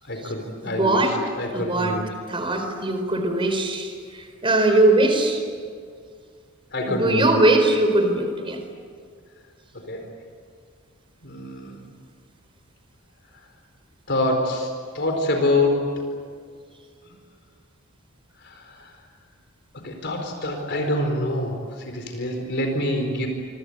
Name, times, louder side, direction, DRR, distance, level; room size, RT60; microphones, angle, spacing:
voice 1, 0.1-2.0 6.7-7.3 9.7-10.0 11.2-11.8 14.1-14.7 14.9-15.9 18.4-18.9 19.8-21.6 21.9-23.3, left 1 dB, 55° left, 3 dB, 4.5 m, -26 dB
voice 2, 0.6-1.1 1.5-2.0 2.3-5.4 6.8-8.6, right 2 dB, 25° right, 5 dB, 4.3 m, -21 dB
27.0 x 26.0 x 8.2 m, 2.1 s
head